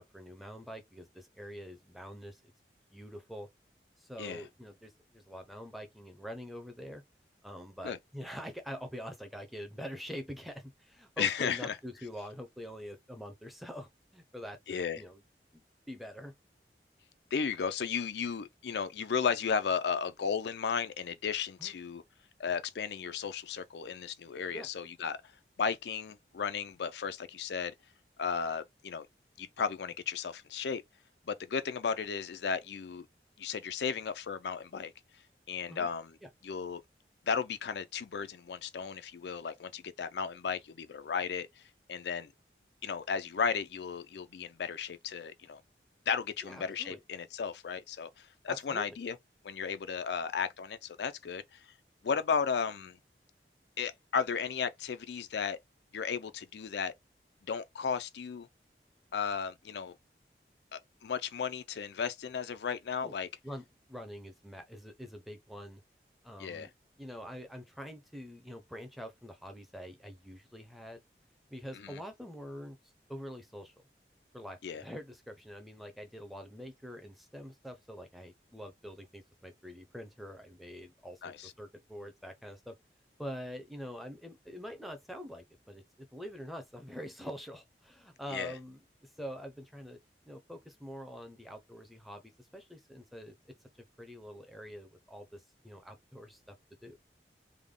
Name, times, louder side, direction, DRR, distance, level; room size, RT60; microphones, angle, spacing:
voice 1, 0.0-2.5 2.9-3.5 4.0-7.0 7.4-15.2 15.5-15.6 15.9-16.3 21.6-21.7 24.5-24.7 35.7-35.9 36.2-36.3 46.4-47.0 48.5-48.9 63.0-63.1 63.4-65.8 66.2-66.7 67.0-71.0 71.5-72.8 73.1-73.7 74.3-82.8 83.2-90.0 90.3-93.3 94.0-96.6 96.8-97.0, equal, ahead, 0.6 m, -45 dB
voice 2, 11.2-11.8 14.7-15.0 17.3-22.0 22.4-25.2 25.6-27.7 28.2-29.1 29.4-30.8 31.3-33.1 33.4-34.9 35.5-36.2 36.4-36.8 37.2-41.6 41.9-42.3 42.8-45.6 46.1-49.2 49.4-51.7 52.0-53.0 53.8-55.6 55.9-56.9 57.5-58.5 59.1-60.0 60.7-63.3 66.4-66.7 71.7-72.0 74.6-74.8 81.2-81.5 88.3-88.5, left 6 dB, 80° left, 0.4 m, -34 dB
3.4 x 2.2 x 3.7 m
head